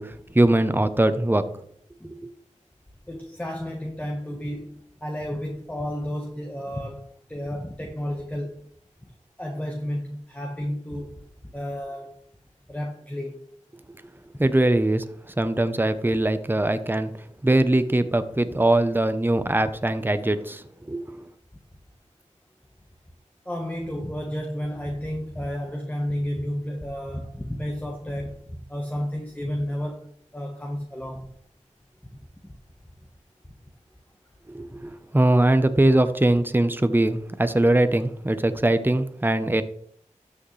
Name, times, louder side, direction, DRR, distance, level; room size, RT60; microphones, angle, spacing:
voice 1, 0.0-1.4 14.4-15.0 15.4-17.1 17.4-21.2 34.5-34.8 35.1-39.6, right 1 dB, 15° right, 0.8 m, -21 dB
voice 2, 3.1-8.7 9.4-11.2 11.5-12.1 12.7-13.4 23.4-31.3, equal, 10° left, 1.3 m, -32 dB
12.5 x 6.4 x 3.3 m
cardioid pair, 45°, 13 cm